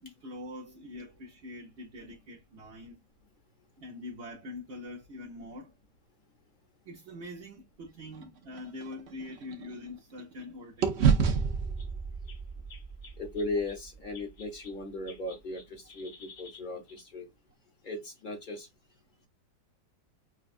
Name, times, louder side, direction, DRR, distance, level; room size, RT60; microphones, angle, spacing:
voice 1, 0.0-3.0 3.8-5.7 6.9-11.1, left 2 dB, 45° right, 1.0 m, -44 dB
sound 1, 8.1-10.4 10.8-15.0, right 6 dB, 60° right, 0.6 m, -31 dB
sound 2, 9.7-9.8 10.5-10.6 10.8-10.9 11.2-11.3 11.8-11.9 12.2-14.8 15.1-17.0, left 5 dB, 55° left, 1.4 m, -53 dB
voice 2, 13.2-17.3 17.8-18.7, left 2 dB, 35° left, 0.9 m, -37 dB
6.0 x 2.3 x 2.5 m
omnidirectional pair, 1.9 m